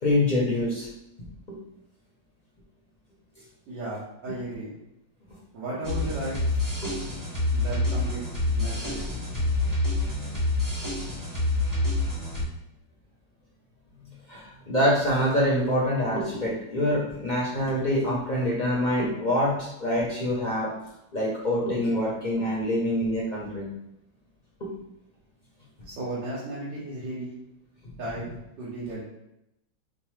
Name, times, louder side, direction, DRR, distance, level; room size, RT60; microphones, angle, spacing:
voice 1, 0.0-0.9 1.5-1.6 4.3-4.4 6.8-6.9 14.3-20.7 21.1-23.7 24.6-24.7, left 1 dB, 50° left, -6 dB, 0.5 m, -25 dB
voice 2, 3.7-4.7 5.5-6.6 7.5-9.2 25.8-27.4 28.0-28.3 28.6-29.1, right 2 dB, 85° right, -9 dB, 1.7 m, -35 dB
sound 1, 5.8-12.4, left 2 dB, 15° right, 0.6 m, -27 dB
5.2 x 2.0 x 3.1 m, 0.85 s
omnidirectional pair, 1.9 m